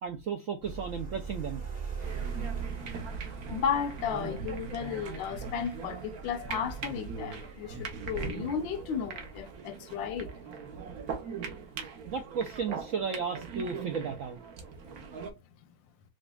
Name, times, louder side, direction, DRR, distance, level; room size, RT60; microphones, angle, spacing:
voice 1, 0.0-1.6 11.9-14.4, right 6 dB, 75° right, 0.7 m, -34 dB
sound 1, 0.6-9.6, right 6 dB, 25° right, 1.1 m, -42 dB
sound 2, 2.0-15.3, right 5 dB, 60° right, 1.2 m, -40 dB
voice 2, 3.5-10.3, left 7 dB, 80° left, 1.4 m, -34 dB
5.0 x 2.3 x 2.2 m
omnidirectional pair, 2.0 m